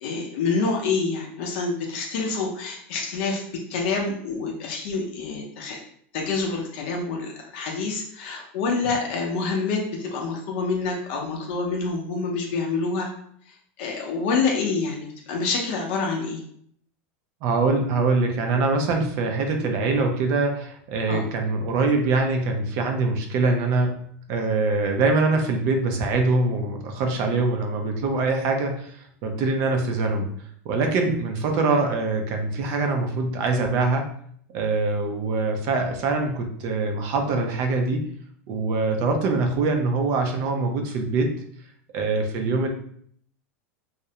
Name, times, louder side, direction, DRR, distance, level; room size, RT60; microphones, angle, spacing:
voice 1, 0.0-3.4 3.7-5.8 6.1-13.1 13.5-16.4 21.1-21.2, left 4 dB, 60° left, 1 dB, 0.5 m, -27 dB
voice 2, 17.4-24.0 24.3-30.3 30.6-34.1 34.5-38.1 38.5-41.4 41.9-42.7, right 3 dB, 45° right, 4 dB, 0.5 m, -23 dB
2.4 x 2.0 x 2.7 m, 0.64 s
supercardioid pair, 155°, 7 cm